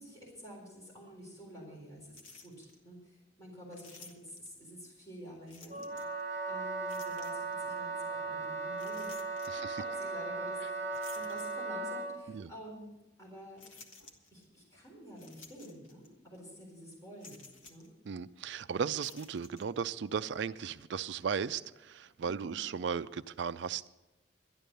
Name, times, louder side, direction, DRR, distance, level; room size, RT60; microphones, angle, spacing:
voice 1, 0.0-5.9 6.5-9.1 9.8-10.9 11.1-12.9 13.2-13.7 14.3-17.9 22.2-22.6, equal, 15° left, 4.1 m, -49 dB
sound 1, 2.1-2.8 3.7-4.6 5.5-6.2 6.9-7.6 8.7-9.8 10.9-12.0 12.5-12.6 13.6-14.5 15.2-16.1 16.3-16.5 17.2-17.9 18.9-19.7, left 4 dB, 85° left, 1.5 m, -54 dB
Wind instrument woodwind instrument, 5.7-12.2, right 3 dB, 35° right, 1.5 m, -37 dB
voice 2, 9.5-9.8 12.3-12.5 18.1-23.9, right 6 dB, 60° right, 0.4 m, -36 dB
12.0 x 10.5 x 6.7 m
head